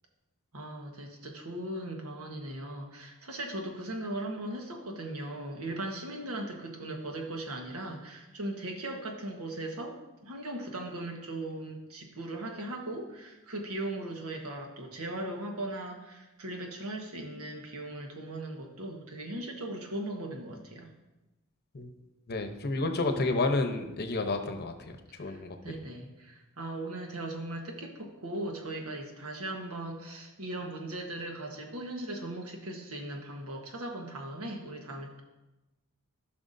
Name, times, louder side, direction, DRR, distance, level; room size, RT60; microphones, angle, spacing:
voice 1, 0.5-9.9 10.2-20.9 25.2-35.2, right 1 dB, 85° right, 2 dB, 1.3 m, -38 dB
voice 2, 22.3-24.7 25.2-25.6, left 2 dB, 50° left, 6 dB, 0.8 m, -30 dB
15.0 x 5.8 x 2.7 m, 1.0 s
head